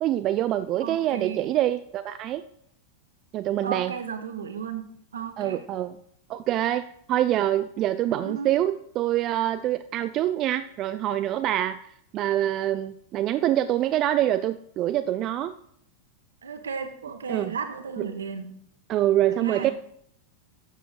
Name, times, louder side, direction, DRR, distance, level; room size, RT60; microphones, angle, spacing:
voice 1, 0.0-2.4 3.3-3.9 5.4-6.0 6.3-11.8 12.1-15.5 17.3-17.5 18.9-19.7, right 13 dB, 35° right, 11 dB, 0.3 m, -25 dB
voice 2, 0.8-1.5 3.6-4.8 5.1-5.6 8.1-8.5 16.4-18.5 19.3-19.7, right 6 dB, 70° right, 8 dB, 1.0 m, -34 dB
11.5 x 7.0 x 2.4 m, 0.68 s
figure-of-eight pair, 90°, 0 cm